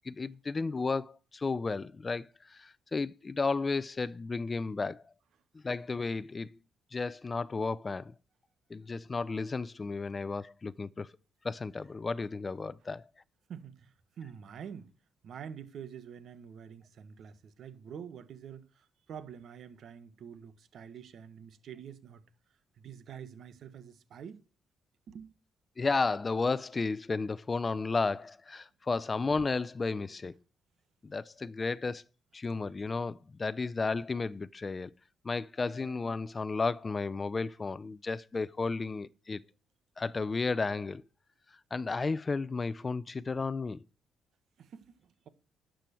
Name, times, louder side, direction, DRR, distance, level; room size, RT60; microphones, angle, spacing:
voice 1, 0.1-5.0 5.6-6.6 6.9-8.1 8.7-11.1 11.4-13.0 25.8-30.3 31.0-32.0 32.3-34.9 35.2-39.4 40.0-41.0 41.7-43.8, left 4 dB, 30° left, 0.5 m, -33 dB
voice 2, 13.5-14.9 15.2-22.2 22.7-24.4 25.1-25.3 44.6-45.3, right 8 dB, 65° right, 1.4 m, -47 dB
12.0 x 7.7 x 4.4 m
cardioid pair, 90°, 0 cm